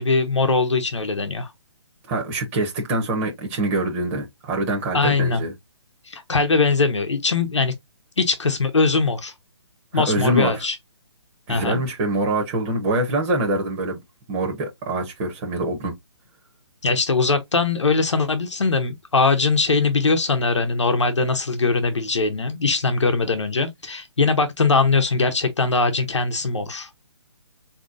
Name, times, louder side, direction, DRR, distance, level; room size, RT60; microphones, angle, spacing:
voice 1, 0.0-1.5 4.9-5.4 6.0-7.7 8.2-9.3 9.9-10.8 11.5-11.8 16.8-26.9, left 4 dB, 90° left, 0.9 m, -21 dB
voice 2, 2.1-5.5 9.9-10.6 11.5-14.0 14.3-15.9, right 1 dB, 25° right, 0.8 m, -24 dB
4.0 x 2.9 x 2.4 m
hypercardioid pair, 145°, 15 cm